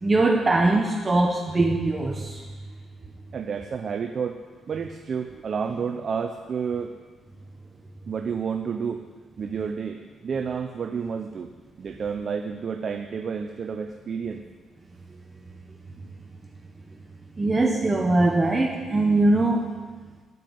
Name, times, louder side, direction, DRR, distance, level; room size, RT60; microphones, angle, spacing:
voice 1, 0.0-2.5 17.4-19.7, right 2 dB, 25° right, 2 dB, 1.2 m, -21 dB
voice 2, 3.3-7.0 8.1-9.0 9.4-11.5 11.8-14.4, right 6 dB, 50° right, 6 dB, 0.7 m, -30 dB
9.4 x 9.4 x 9.6 m, 1.4 s
cardioid pair, 90°, 0 cm